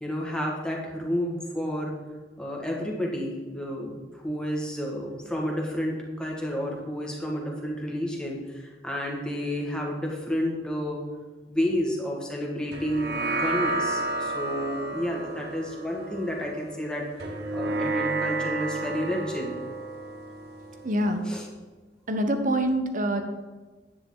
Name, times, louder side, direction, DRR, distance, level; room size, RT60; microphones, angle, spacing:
voice 1, 0.0-2.0 2.4-11.0 11.5-19.5 21.2-21.5, equal, 5° left, -2 dB, 2.0 m, -31 dB
sound 1, 12.7-21.4, right 2 dB, 60° right, 1.4 m, -32 dB
voice 2, 20.8-21.2 22.1-23.2, right 1 dB, 45° right, 6 dB, 1.1 m, -25 dB
10.5 x 9.5 x 4.0 m, 1.3 s
head